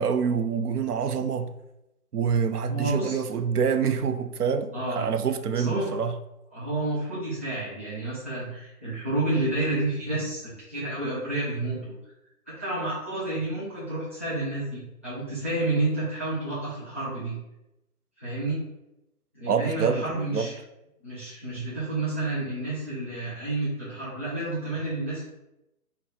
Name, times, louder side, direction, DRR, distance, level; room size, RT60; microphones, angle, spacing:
voice 1, 0.0-1.5 2.1-6.1 19.5-20.5, right 6 dB, 90° right, 0.5 m, -26 dB
voice 2, 2.7-3.2 4.7-5.1 5.5-5.9 6.5-11.9 12.5-17.3 18.2-18.6 19.3-20.6 21.0-25.2, right 2 dB, 10° right, 0.5 m, -30 dB
4.3 x 2.0 x 4.0 m
figure-of-eight pair, 150°, 45 cm